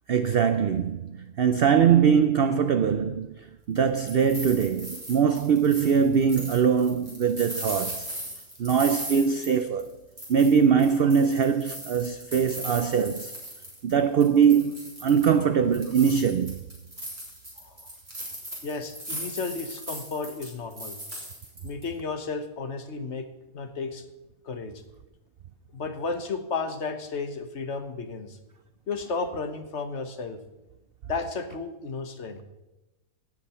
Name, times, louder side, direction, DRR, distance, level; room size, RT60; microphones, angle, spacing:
voice 1, 0.1-8.1 8.6-9.9 10.3-13.3 13.8-16.6, right 7 dB, 75° right, 0.5 m, -22 dB
sound 1, 3.8-9.9 10.2-13.9 14.2-15.4 15.7-21.8, right 1 dB, 30° right, 4.0 m, -38 dB
voice 2, 17.6-17.9 18.6-21.0 21.6-23.3 23.5-24.0 24.4-24.8 25.7-28.4 28.9-30.4 31.0-32.4, left 4 dB, 50° left, 1.2 m, -33 dB
17.5 x 7.6 x 4.3 m
omnidirectional pair, 1.6 m